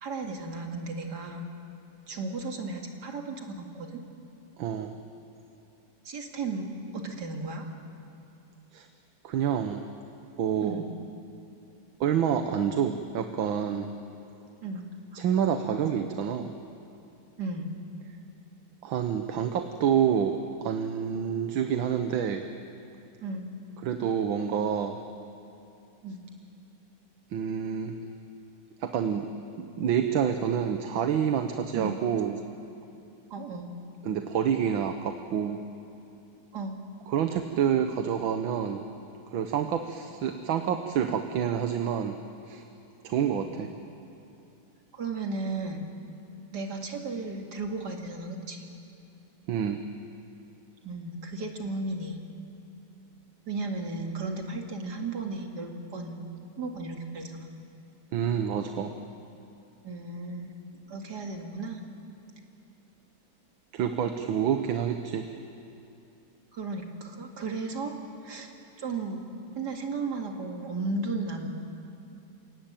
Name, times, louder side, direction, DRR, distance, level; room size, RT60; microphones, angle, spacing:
voice 1, 0.0-1.4 2.1-4.0 6.0-7.7 10.6-10.9 14.6-14.9 17.4-17.8 23.2-23.5 26.0-26.2 31.7-32.0 33.3-33.7 36.5-36.8 44.9-45.9 46.5-48.7 50.8-52.2 53.5-56.2 56.6-57.5 59.8-60.5 60.9-61.8 66.5-68.0 68.2-68.5 68.8-69.3 69.6-71.5, right 3 dB, 55° right, 2 dB, 2.7 m, -35 dB
voice 2, 4.6-4.9 8.7-8.9 9.2-9.9 10.4-10.8 12.0-13.9 15.2-16.5 18.8-22.4 23.8-25.0 27.3-28.0 28.8-29.3 29.6-32.4 34.0-35.6 37.1-38.9 39.3-42.2 42.5-42.6 43.0-43.7 49.5-49.8 58.1-59.0 63.7-65.3, right 8 dB, 85° right, 6 dB, 1.8 m, -28 dB
30.0 x 17.5 x 9.0 m, 2.8 s
omnidirectional pair, 2.1 m